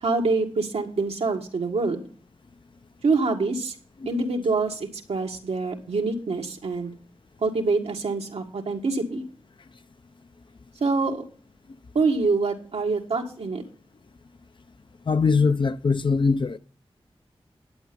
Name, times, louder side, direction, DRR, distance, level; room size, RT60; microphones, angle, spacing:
voice 1, 0.0-2.1 3.0-3.8 4.1-6.9 7.4-9.2 10.8-11.2 12.0-13.6, right 3 dB, 90° right, 1.8 m, -25 dB
voice 2, 15.1-16.6, left 4 dB, 50° left, 0.6 m, -21 dB
11.0 x 8.7 x 5.2 m
cardioid pair, 55°, 10 cm